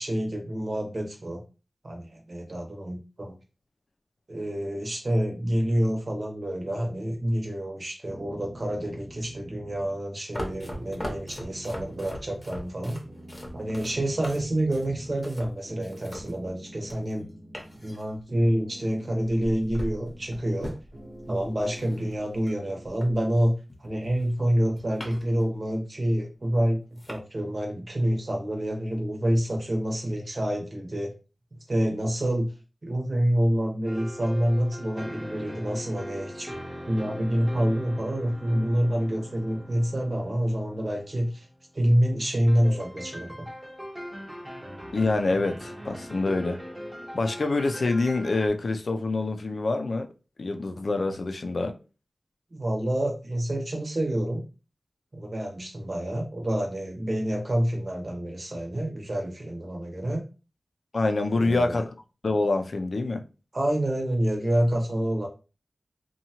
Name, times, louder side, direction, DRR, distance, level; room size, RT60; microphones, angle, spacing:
voice 1, 0.0-1.4 1.8-3.3 4.3-13.0 13.5-17.3 17.8-20.7 21.3-23.5 23.8-31.1 31.7-32.5 32.8-36.5 36.9-41.5 41.7-43.5 52.5-54.4 55.1-60.2 61.3-61.8 63.5-65.3, equal, 50° right, 0.9 m, -27 dB
sound 1, 8.1-10.1 10.4-12.7 13.0-15.4 15.6-18.0 18.3-20.6 20.9-23.3, right 1 dB, 80° right, 0.9 m, -46 dB
sound 2, 10.3-17.2 17.5-18.5 19.2-23.4 23.7-25.5 25.8-25.9 26.5-26.6 27.0-27.2, equal, 35° left, 0.7 m, -40 dB
sound 3, 33.9-41.6 42.5-48.5, equal, 15° right, 0.7 m, -41 dB
voice 2, 44.9-46.6 47.1-50.1 50.4-51.8 60.9-61.9 62.2-63.2, left 3 dB, 70° left, 0.4 m, -26 dB
2.7 x 2.2 x 2.8 m
wide cardioid pair, 75°, 0 cm